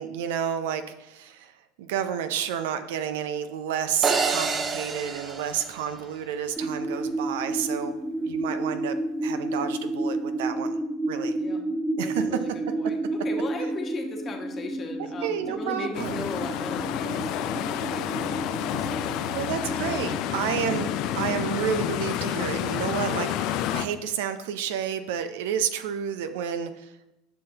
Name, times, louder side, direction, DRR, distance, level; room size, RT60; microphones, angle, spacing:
voice 1, 0.0-1.5 1.8-8.0 8.2-9.0 9.2-10.7 11.1-11.3 12.0-12.5 13.6-13.7 15.0-16.3 19.3-27.1, right 8 dB, 80° right, 10 dB, 0.6 m, -30 dB
sound 1, 4.0-6.4, right 4 dB, 30° right, 0.8 m, -28 dB
sound 2, 6.6-21.6, right 2 dB, 5° right, 0.5 m, -31 dB
voice 2, 12.0-12.5 12.8-13.0 13.2-20.2 20.5-20.6, left 3 dB, 35° left, 3 dB, 1.3 m, -37 dB
sound 3, 15.9-23.9, left 11 dB, 60° left, 0.5 m, -29 dB
9.9 x 5.8 x 2.9 m, 0.91 s
hypercardioid pair, 90°, 0 cm